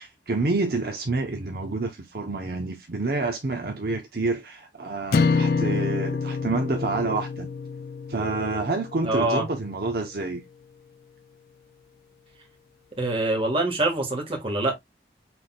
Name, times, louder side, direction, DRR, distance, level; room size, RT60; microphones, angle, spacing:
voice 1, 0.0-7.5 8.1-10.4, right 3 dB, 55° right, 0.8 m, -28 dB
sound 1, 5.1-9.5, left 4 dB, 55° left, 0.3 m, -27 dB
voice 2, 9.0-9.4 13.0-14.7, right 2 dB, 30° right, 1.5 m, -24 dB
6.0 x 3.4 x 2.3 m
head